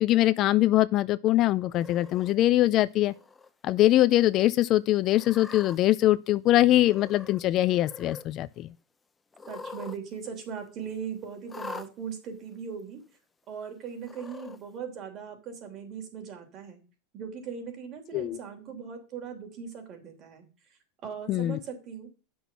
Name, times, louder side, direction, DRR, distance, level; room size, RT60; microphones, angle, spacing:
voice 1, 0.0-3.1 3.6-8.7 18.1-18.4 21.3-21.6, left 15 dB, 45° left, 0.5 m, -23 dB
Cat, 1.7-2.3 3.0-3.5 3.9-4.0 5.1-5.8 6.8-7.4 7.7-8.3 9.3-10.0 10.3-10.4 11.5-11.9 12.8-12.9 14.0-14.6, left 4 dB, 15° left, 0.8 m, -43 dB
voice 2, 9.5-13.0 13.5-16.8 17.1-20.5 21.0-22.1, right 6 dB, 40° right, 3.2 m, -39 dB
9.2 x 6.3 x 5.5 m
supercardioid pair, 130°, 0 cm